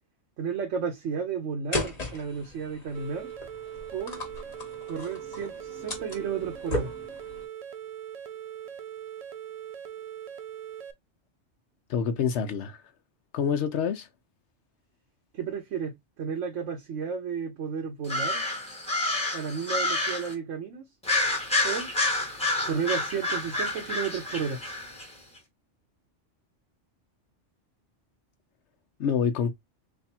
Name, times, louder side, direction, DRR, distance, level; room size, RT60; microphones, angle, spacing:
voice 1, 0.4-3.3 3.9-4.2 4.9-6.9 15.3-18.4 19.3-20.9 21.6-21.9 22.6-24.6, right 6 dB, 80° right, 1.1 m, -32 dB
sound 1, 1.7-7.4, left 1 dB, 35° left, 1.2 m, -37 dB
sound 2, 2.9-10.9, right 10 dB, 65° right, 0.3 m, -41 dB
voice 2, 11.9-12.8 13.3-14.1 29.0-29.5, left 7 dB, 70° left, 1.0 m, -27 dB
sound 3, 18.0-20.3 21.0-25.1, left 2 dB, 5° left, 1.2 m, -29 dB
3.3 x 2.4 x 4.2 m
omnidirectional pair, 1.2 m